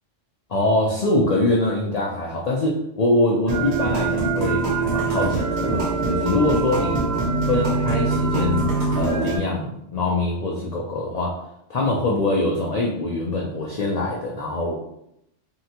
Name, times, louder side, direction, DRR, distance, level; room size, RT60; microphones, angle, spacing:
voice 1, 0.5-11.4 11.7-14.7, left 2 dB, 80° left, -3 dB, 0.3 m, -23 dB
sound 1, 3.5-9.4, right 3 dB, 65° right, 0.8 m, -23 dB
3.6 x 2.2 x 2.8 m, 0.79 s
omnidirectional pair, 1.3 m